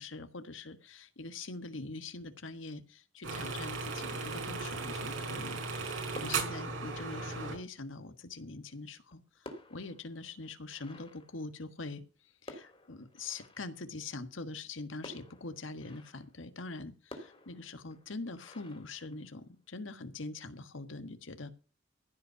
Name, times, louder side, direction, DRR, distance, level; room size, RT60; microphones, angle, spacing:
voice 1, 0.0-12.0 12.4-21.5, left 3 dB, 85° left, 10 dB, 1.5 m, -44 dB
sound 1, 3.2-7.5, right 4 dB, 85° right, 5.1 m, -36 dB
sound 2, 6.1-7.9 8.9-12.0 12.5-14.0 15.0-16.4 17.1-19.6, left 1 dB, 30° left, 2.9 m, -53 dB
15.0 x 5.6 x 7.0 m, 0.34 s
head